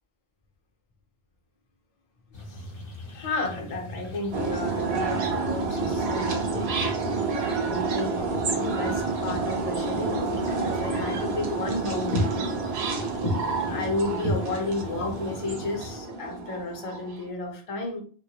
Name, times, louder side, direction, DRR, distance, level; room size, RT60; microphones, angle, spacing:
sound 1, 2.3-16.0, left 1 dB, 60° left, 0.9 m, -36 dB
voice 1, 3.1-6.7 7.0-12.4 13.2-18.0, left 2 dB, 40° left, 1 dB, 0.6 m, -33 dB
sound 2, 4.3-17.2, right 4 dB, 80° right, 0.9 m, -29 dB
2.2 x 2.1 x 2.8 m, 0.43 s
omnidirectional pair, 1.0 m